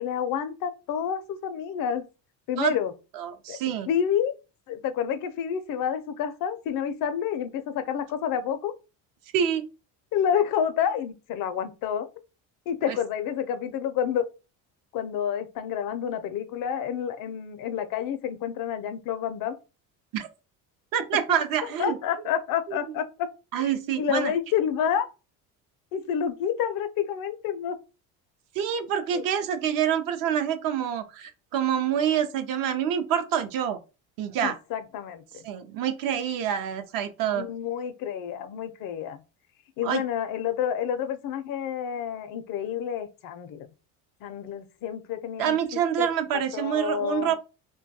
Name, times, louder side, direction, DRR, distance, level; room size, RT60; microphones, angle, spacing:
voice 1, 0.0-2.0 2.5-2.9 3.5-3.6 3.9-4.3 4.7-8.7 10.1-12.1 12.7-14.2 14.9-19.6 21.6-23.3 24.0-25.1 25.9-27.8 29.1-29.2 34.4-35.4 37.3-39.2 39.8-43.7 44.2-46.1 46.3-47.4, left 8 dB, 55° left, 0.5 m, -29 dB
voice 2, 3.2-3.9 9.3-9.7 12.9-13.0 20.1-20.3 20.9-22.0 22.7-22.8 23.5-24.3 28.6-33.8 34.2-34.6 35.4-37.4 39.8-40.0 45.4-47.4, right 9 dB, 55° right, 0.5 m, -26 dB
2.2 x 2.2 x 2.6 m
supercardioid pair, 105°, 40 cm